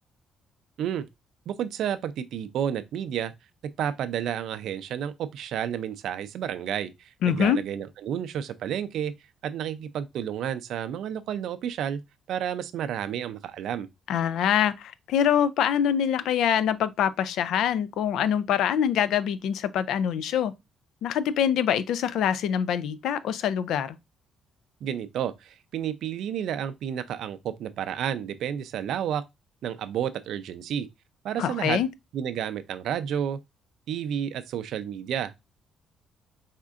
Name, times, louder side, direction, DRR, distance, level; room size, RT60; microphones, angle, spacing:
voice 1, 1.5-3.3 3.8-9.1 9.4-12.0 12.3-13.9 24.8-29.2 29.6-30.9 31.2-31.8 32.1-33.4 33.9-35.3, right 9 dB, 65° right, 0.4 m, -31 dB
voice 2, 7.2-7.6 14.1-20.5 21.0-24.0 31.4-31.9, left 9 dB, 70° left, 0.4 m, -24 dB
4.2 x 3.6 x 2.4 m
cardioid pair, 145°, 0 cm